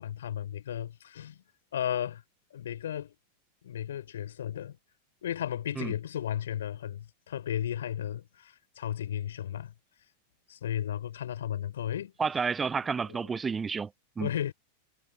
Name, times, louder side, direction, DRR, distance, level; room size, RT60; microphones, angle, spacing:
voice 1, 0.0-1.4 1.7-2.2 2.5-3.1 3.6-4.8 5.2-9.7 10.5-12.1 13.1-13.4 14.2-14.5, left 10 dB, 60° left, 6.8 m, -34 dB
voice 2, 12.2-13.9 14.2-14.3, right 5 dB, 15° right, 0.6 m, -30 dB
figure-of-eight pair, 90°, 0 cm